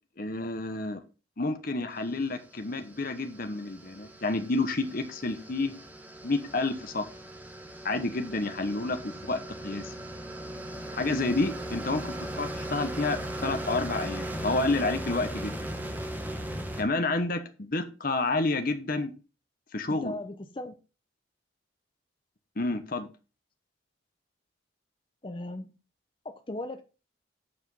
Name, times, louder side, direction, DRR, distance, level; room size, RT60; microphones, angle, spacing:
voice 1, 0.2-1.0 1.4-5.7 6.2-7.0 7.8-9.9 10.9-15.6 16.8-19.1 19.7-20.2 22.6-23.1, left 2 dB, 45° left, 1.0 m, -29 dB
sound 1, 2.1-16.8, right 1 dB, 10° right, 1.4 m, -38 dB
voice 2, 14.3-14.6 19.9-20.7 25.2-25.7 26.2-26.8, left 1 dB, 25° left, 0.7 m, -37 dB
8.5 x 5.0 x 5.5 m
head